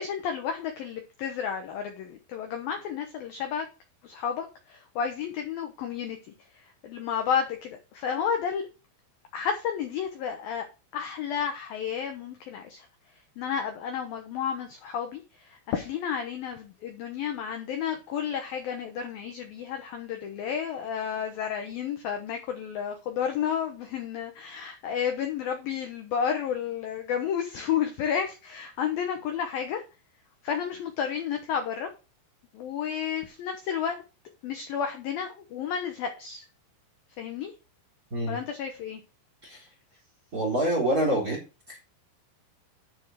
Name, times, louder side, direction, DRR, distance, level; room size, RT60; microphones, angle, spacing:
voice 1, 0.0-3.7 4.0-6.2 6.5-8.7 9.3-10.7 10.9-12.9 13.4-29.8 30.4-31.9 32.5-34.0 34.4-36.5 37.2-37.5 38.3-39.0, left 8 dB, 75° left, 5 dB, 2.2 m, -31 dB
voice 2, 40.3-41.4 41.7-41.8, right 1 dB, 25° right, 0 dB, 2.5 m, -26 dB
10.0 x 4.5 x 6.3 m, 0.30 s
omnidirectional pair, 5.6 m